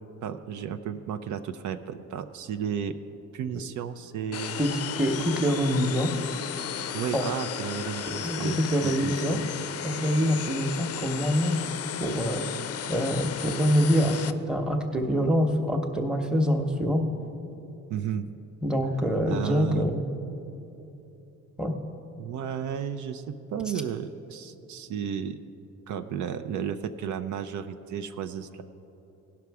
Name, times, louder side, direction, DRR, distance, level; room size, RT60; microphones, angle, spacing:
voice 1, 0.2-3.0 3.3-4.6 6.9-9.4 17.9-18.2 19.3-20.0 22.2-23.2 23.5-25.4 25.9-28.6, right 8 dB, 70° right, 8 dB, 0.5 m, -33 dB
sound 1, 4.3-14.3, left 8 dB, 55° left, 0.5 m, -34 dB
voice 2, 4.6-6.1 7.1-7.2 8.1-9.4 9.8-11.6 12.0-12.4 12.9-17.1 18.6-20.1 21.6-21.8, equal, 5° right, 3 dB, 0.9 m, -25 dB
16.5 x 5.9 x 4.7 m, 3.0 s
cardioid pair, 90°, 30 cm